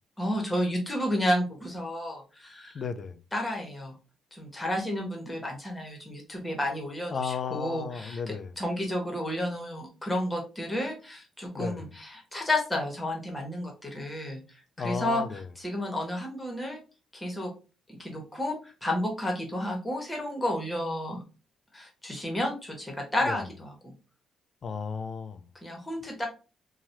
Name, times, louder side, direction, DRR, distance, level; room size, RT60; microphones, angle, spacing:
voice 1, 0.2-2.8 3.3-3.9 4.3-14.4 14.8-15.2 15.6-16.8 17.1-17.5 17.9-21.2 21.7-23.9 25.6-26.3, left 1 dB, 15° left, 1.2 m, -31 dB
voice 2, 2.7-3.2 7.1-8.5 11.5-11.9 14.8-15.5 23.2-23.4 24.6-25.5, left 5 dB, 50° left, 0.4 m, -34 dB
3.0 x 2.3 x 2.7 m
cardioid pair, 90°, 0 cm